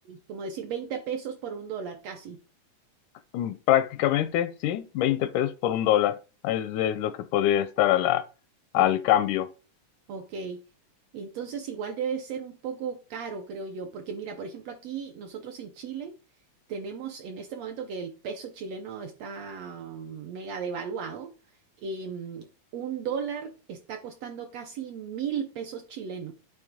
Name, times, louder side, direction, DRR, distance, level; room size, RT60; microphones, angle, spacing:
voice 1, 0.1-2.4 8.7-8.9 10.1-10.6 11.1-16.1 16.7-21.3 21.8-26.3, right 6 dB, 75° right, 1.6 m, -35 dB
voice 2, 3.3-6.2 6.4-8.2 8.7-9.5, left 12 dB, 85° left, 2.0 m, -24 dB
9.2 x 3.2 x 5.0 m
omnidirectional pair, 3.5 m